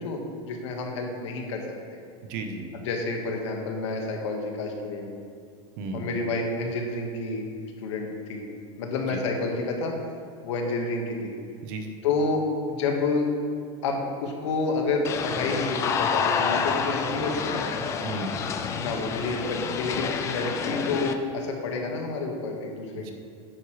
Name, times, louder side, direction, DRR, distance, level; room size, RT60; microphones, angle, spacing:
voice 1, 0.0-1.6 1.9-2.0 2.7-5.2 5.9-7.4 7.8-8.4 8.8-9.9 10.4-11.4 12.0-13.3 13.8-17.7 18.8-23.1, left 3 dB, 80° left, 1 dB, 1.7 m, -29 dB
voice 2, 2.3-2.7 5.8-6.1 9.1-9.2 11.6-11.9 18.0-18.4 22.9-23.1, right 3 dB, 50° right, 5 dB, 1.0 m, -34 dB
sound 1, 15.0-21.1, left 6 dB, 20° left, 0.4 m, -28 dB
9.7 x 8.9 x 3.3 m, 2.2 s
supercardioid pair, 165°, 15 cm